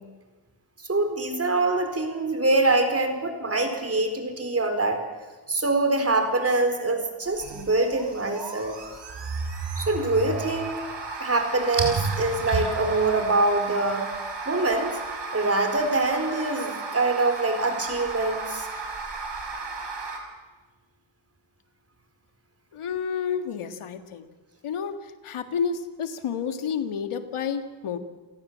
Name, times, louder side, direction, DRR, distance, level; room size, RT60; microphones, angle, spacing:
voice 1, 0.9-5.0 5.5-8.8 9.8-10.7 11.2-14.0 14.5-14.9 15.3-18.7, right 2 dB, 30° right, 6 dB, 4.4 m, -24 dB
sound 1, 7.3-20.2, right 4 dB, 55° right, 5.2 m, -33 dB
voice 2, 22.7-24.3 24.6-24.9 25.2-28.0, left 7 dB, 80° left, 8 dB, 1.9 m, -30 dB
29.5 x 17.5 x 7.5 m, 1.3 s
cardioid pair, 110°, 49 cm